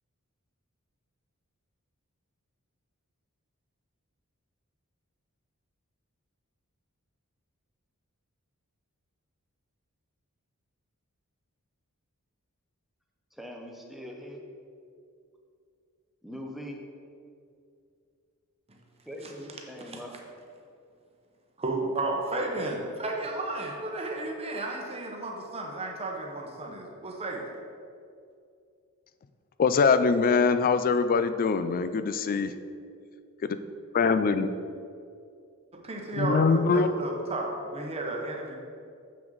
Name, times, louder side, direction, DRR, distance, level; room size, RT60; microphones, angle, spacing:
voice 1, 13.3-14.4 16.2-16.8 19.0-20.1, equal, ahead, 0 dB, 0.7 m, -41 dB
voice 2, 19.2-20.2 21.6-27.5 35.7-38.6, right 2 dB, 25° right, 0 dB, 0.9 m, -33 dB
voice 3, 29.6-32.5 33.4-33.6 33.9-34.5 36.2-36.9, left 5 dB, 40° left, 11 dB, 0.3 m, -23 dB
7.0 x 6.0 x 3.9 m, 2.4 s
head